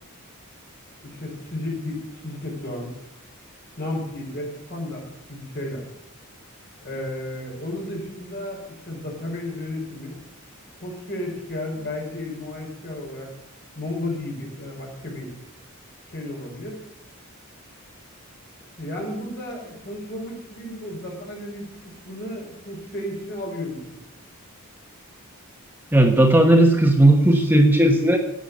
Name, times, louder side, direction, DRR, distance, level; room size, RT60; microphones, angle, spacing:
voice 1, 1.0-2.9 3.8-5.9 6.8-10.2 10.8-13.3 13.8-15.3 16.1-16.8 18.8-23.8, left 1 dB, 45° left, -1 dB, 5.2 m, -33 dB
voice 2, 25.9-28.2, right 1 dB, 10° right, 3 dB, 1.1 m, -15 dB
11.5 x 8.9 x 9.8 m, 0.86 s
head